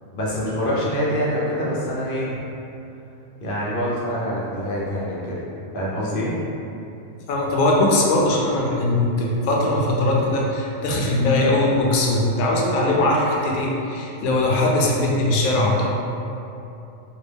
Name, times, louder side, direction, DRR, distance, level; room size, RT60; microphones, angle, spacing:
voice 1, 0.1-2.4 3.4-5.4 5.7-6.3, equal, 60° left, -6 dB, 0.5 m, -25 dB
voice 2, 7.3-15.9, left 2 dB, 85° left, -3 dB, 1.1 m, -20 dB
3.3 x 2.2 x 3.3 m, 2.8 s
omnidirectional pair, 1.4 m